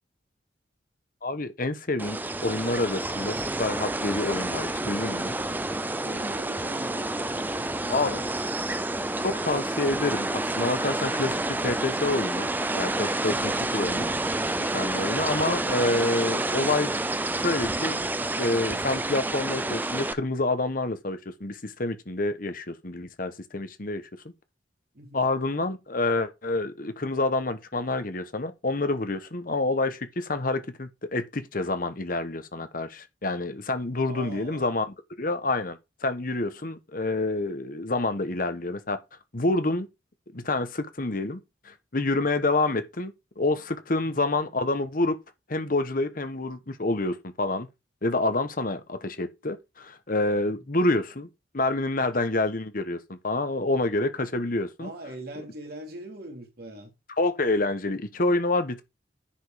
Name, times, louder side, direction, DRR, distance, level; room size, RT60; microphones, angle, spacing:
voice 1, 1.2-5.3 7.9-8.2 9.2-14.1 14.6-16.9 17.4-18.1 18.4-24.0 25.1-34.9 35.2-39.0 39.3-39.9 40.3-45.2 45.5-47.7 48.0-51.3 51.5-54.9 57.2-58.8, left 2 dB, 50° left, 1.2 m, -28 dB
sound 1, 2.0-20.1, right 2 dB, 10° right, 0.5 m, -29 dB
voice 2, 5.9-8.5 24.9-25.3 34.1-34.7 50.6-50.7 54.8-56.9, right 1 dB, 55° right, 3.0 m, -42 dB
10.0 x 5.2 x 5.1 m
head